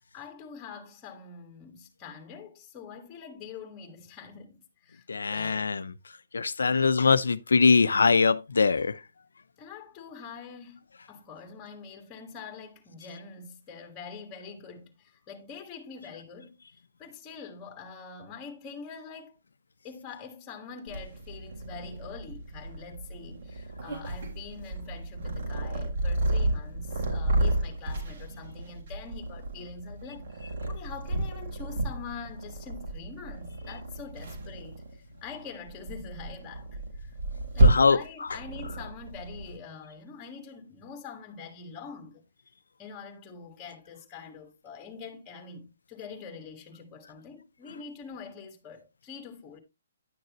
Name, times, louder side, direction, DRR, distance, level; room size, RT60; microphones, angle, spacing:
voice 1, 0.1-5.7 6.7-6.9 8.7-8.8 9.6-16.6 17.0-19.4 19.8-37.1 37.5-42.2 42.8-49.6, left 5 dB, 20° left, 1.6 m, -45 dB
voice 2, 5.1-5.9 6.3-8.9 37.6-38.3, left 4 dB, 85° left, 0.6 m, -22 dB
Purr, 20.9-39.6, right 2 dB, 60° right, 3.6 m, -31 dB
10.5 x 6.5 x 3.0 m
hypercardioid pair, 145°, 0 cm